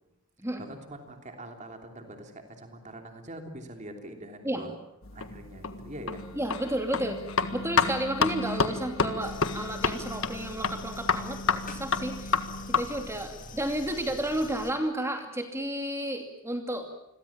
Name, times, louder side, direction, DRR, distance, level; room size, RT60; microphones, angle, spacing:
voice 1, 0.6-4.8 5.1-6.2 7.1-7.5 13.3-13.5, right 1 dB, 30° right, 4 dB, 3.1 m, -44 dB
sound 1, 5.0-13.1, left 5 dB, 60° left, 1.7 m, -30 dB
voice 2, 6.4-7.2 7.5-12.4 12.7-16.9, right 1 dB, 10° right, 5 dB, 2.7 m, -32 dB
sound 2, 9.2-14.7, left 2 dB, 35° left, 2.5 m, -45 dB
28.5 x 22.0 x 7.3 m, 0.86 s
head